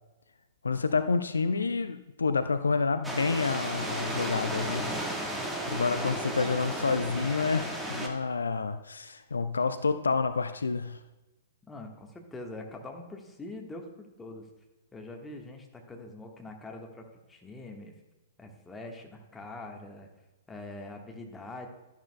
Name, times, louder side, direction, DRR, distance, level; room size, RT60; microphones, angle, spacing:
voice 1, 0.6-5.0 5.7-11.0, left 4 dB, 75° left, 11 dB, 0.5 m, -29 dB
sound 1, 3.0-8.1, right 1 dB, 5° right, 1.4 m, -34 dB
voice 2, 11.7-14.5 14.9-17.9 18.4-20.1 20.5-21.7, left 2 dB, 10° left, 2 dB, 1.4 m, -43 dB
12.0 x 10.5 x 2.2 m, 1.1 s
figure-of-eight pair, 110°, 0 cm